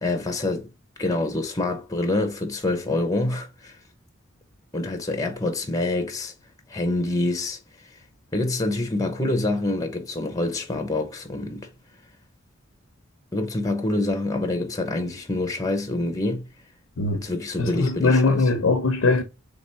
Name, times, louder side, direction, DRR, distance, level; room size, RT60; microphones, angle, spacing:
voice 1, 0.0-0.7 1.0-3.8 4.7-6.3 6.7-7.6 8.3-11.7 13.3-16.5 17.1-18.4, left 2 dB, 15° left, 0.7 m, -26 dB
voice 2, 17.6-19.2, left 3 dB, 85° left, 0.7 m, -21 dB
3.4 x 3.4 x 4.0 m
head